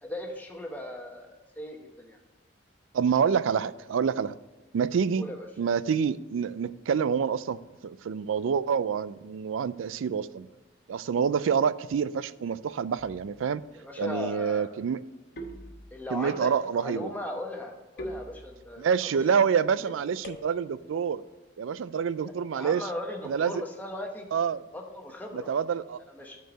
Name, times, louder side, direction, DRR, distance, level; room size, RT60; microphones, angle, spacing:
voice 1, 0.0-2.2 5.2-5.5 13.7-14.7 15.9-18.8 22.5-24.3 24.7-25.5 26.1-26.4, left 1 dB, 10° left, 1.0 m, -38 dB
voice 2, 2.9-4.3 4.7-5.2 5.6-7.6 7.8-10.5 10.9-13.6 14.0-15.0 16.1-17.1 18.8-21.2 21.6-22.9 23.2-23.6 24.3-24.6 25.3-26.0, right 6 dB, 85° right, 0.3 m, -27 dB
sound 1, 13.0-13.5 15.4-16.3 18.0-18.9 20.2-21.0, equal, 55° left, 1.0 m, -43 dB
9.1 x 4.6 x 5.2 m
head